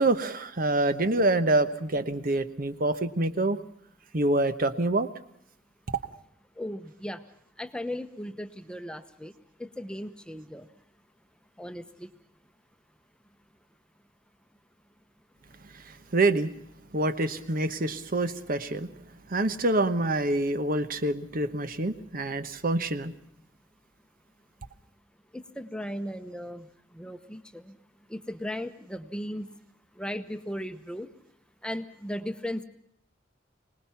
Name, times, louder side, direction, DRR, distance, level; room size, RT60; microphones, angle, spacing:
voice 1, 0.0-3.6 4.1-5.1 16.1-16.5 16.9-18.9 19.3-23.1, right 2 dB, 50° right, 11 dB, 1.1 m, -26 dB
voice 2, 6.6-7.2 7.6-9.3 9.6-10.7 11.6-12.1 25.3-27.8 28.1-29.5 29.9-31.1 31.6-32.7, equal, 5° left, 9 dB, 1.0 m, -37 dB
25.0 x 19.0 x 5.8 m, 0.74 s
head